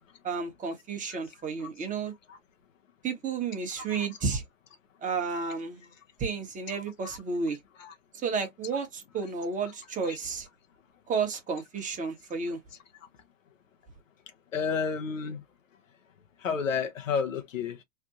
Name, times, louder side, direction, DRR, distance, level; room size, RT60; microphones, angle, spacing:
voice 1, 0.2-2.1 3.0-4.4 5.0-5.8 6.2-7.6 8.2-10.5 11.1-12.6, right 5 dB, 20° right, 1.2 m, -32 dB
voice 2, 14.5-15.4 16.4-17.8, left 6 dB, 85° left, 1.0 m, -31 dB
3.4 x 2.3 x 2.8 m
hypercardioid pair, 110°, 38 cm